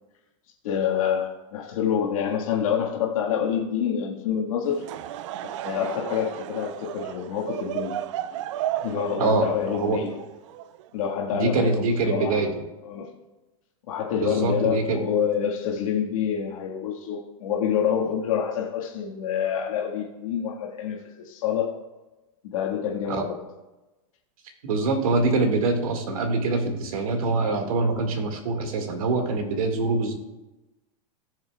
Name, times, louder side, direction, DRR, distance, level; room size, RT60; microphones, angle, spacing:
voice 1, 0.6-4.9 5.4-8.0 8.8-10.2 10.9-12.4 12.8-13.1 13.9-21.8 22.4-23.4, left 8 dB, 75° left, -2 dB, 1.7 m, -27 dB
Laughter / Crowd, 4.7-11.1, right 12 dB, 60° right, 0.4 m, -34 dB
voice 2, 11.3-12.5 14.2-15.0 23.1-23.2 24.6-30.1, right 3 dB, 80° right, 4 dB, 1.9 m, -24 dB
17.5 x 6.9 x 2.3 m, 1.1 s
supercardioid pair, 150°, 18 cm